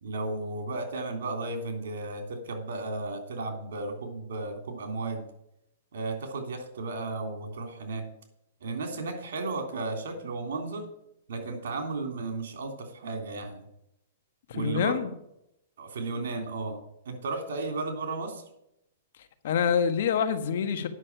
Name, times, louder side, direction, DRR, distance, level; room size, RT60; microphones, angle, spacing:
voice 1, 0.0-5.3 5.9-8.1 8.6-10.9 11.3-13.6 14.5-15.0 15.8-18.4, right 3 dB, 75° right, 5 dB, 3.3 m, -34 dB
voice 2, 14.5-15.1 19.4-20.9, left 7 dB, 65° left, 9 dB, 1.4 m, -26 dB
9.8 x 6.6 x 8.8 m, 0.81 s
hypercardioid pair, 145°, 0 cm